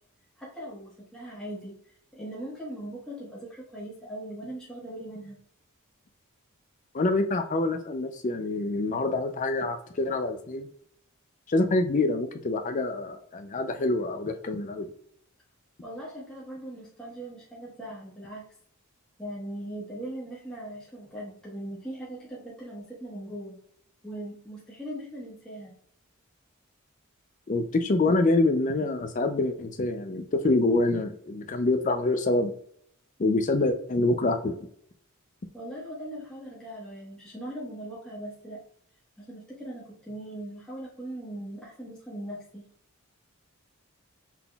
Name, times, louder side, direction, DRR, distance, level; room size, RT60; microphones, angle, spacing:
voice 1, 0.4-1.7 2.1-5.4 15.8-18.5 19.2-23.6 24.0-25.8 35.5-38.6 39.2-42.6, right 1 dB, 5° left, -7 dB, 1.2 m, -40 dB
voice 2, 6.9-10.7 11.5-14.9 27.5-32.5 33.2-34.5, left 2 dB, 35° left, 6 dB, 0.4 m, -26 dB
5.8 x 3.7 x 2.3 m, 0.64 s
head